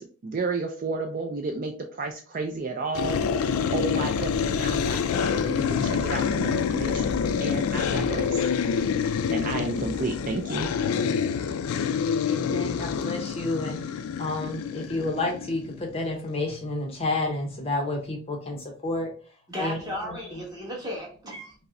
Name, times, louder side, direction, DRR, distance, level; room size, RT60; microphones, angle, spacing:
voice 1, 0.0-8.5 9.3-10.7, right 3 dB, 40° right, 3 dB, 0.3 m, -32 dB
sound 1, 2.9-15.9, left 6 dB, 85° left, 0.3 m, -27 dB
voice 2, 12.1-19.1 19.6-20.5, left 2 dB, 25° left, 2 dB, 0.6 m, -31 dB
voice 3, 19.5-21.5, equal, 20° right, -3 dB, 1.2 m, -35 dB
5.0 x 2.1 x 2.5 m, 0.41 s
head